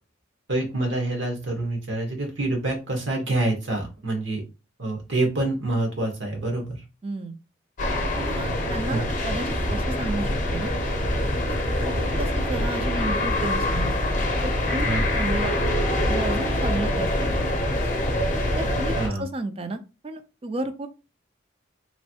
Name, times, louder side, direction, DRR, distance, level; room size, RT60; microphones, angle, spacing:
voice 1, 0.5-4.4 4.8-6.8 8.9-9.0 14.8-15.1 19.0-19.2, right 2 dB, 75° right, 2 dB, 1.2 m, -26 dB
voice 2, 7.0-7.4 8.2-10.7 11.5-14.0 14.4-14.9 15.1-15.6 16.1-17.4 18.6-20.9, right 2 dB, 30° right, 8 dB, 0.4 m, -32 dB
sound 1, 7.8-19.1, left 1 dB, 45° left, 0.6 m, -25 dB
3.1 x 2.6 x 2.7 m, 0.29 s
head